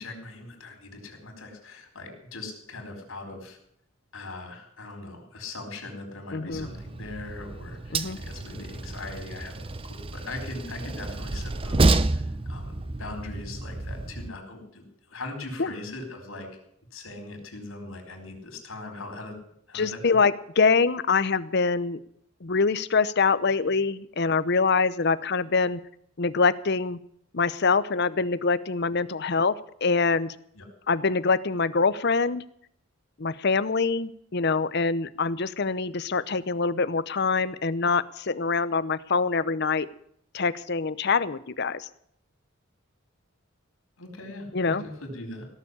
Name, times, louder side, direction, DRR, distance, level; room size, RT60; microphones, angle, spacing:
voice 1, 0.0-3.6 4.1-16.5 16.9-19.4 19.7-20.2 30.5-30.6 44.0-45.5, left 2 dB, 90° left, 4 dB, 4.8 m, -40 dB
voice 2, 6.3-6.7 7.9-8.2 15.6-15.7 19.7-22.0 22.4-25.8 26.2-27.0 27.3-29.5 29.8-30.3 30.9-32.4 33.2-39.9 40.3-41.9 44.5-44.8, left 4 dB, 55° left, 15 dB, 0.8 m, -24 dB
Train, 6.5-14.3, right 2 dB, 25° right, 0.6 m, -29 dB
17.5 x 7.2 x 10.0 m, 0.69 s
head